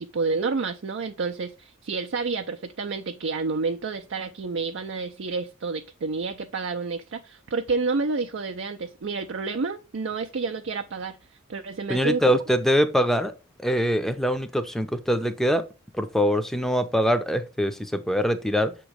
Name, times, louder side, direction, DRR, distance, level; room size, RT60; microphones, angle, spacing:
voice 1, 0.0-11.2 11.5-12.2, right 4 dB, 60° right, 0.5 m, -29 dB
voice 2, 11.9-13.3 13.6-15.6 15.9-18.7, equal, ahead, 0.6 m, -23 dB
7.0 x 3.1 x 4.9 m
head